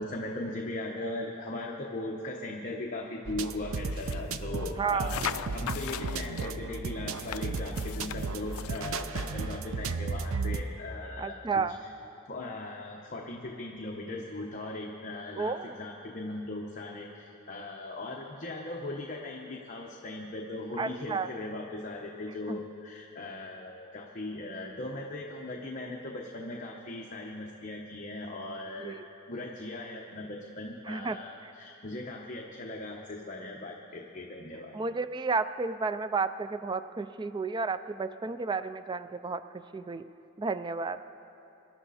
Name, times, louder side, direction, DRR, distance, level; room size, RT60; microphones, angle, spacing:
voice 1, 0.0-11.9 12.3-29.0 29.3-34.8, left 2 dB, 40° left, -1 dB, 1.0 m, -39 dB
sound 1, 3.3-10.6, right 4 dB, 75° right, 0.5 m, -34 dB
sound 2, 3.9-4.5 5.0-6.5 7.1-9.1, left 9 dB, 85° left, 0.4 m, -39 dB
voice 2, 4.8-5.2 11.2-11.8 15.4-15.7 20.8-21.3 22.5-22.6 28.8-29.0 30.9-31.2 34.7-39.4 39.7-40.1 40.4-41.0, right 4 dB, 20° right, 12 dB, 0.3 m, -32 dB
24.0 x 11.5 x 4.2 m, 2.8 s
head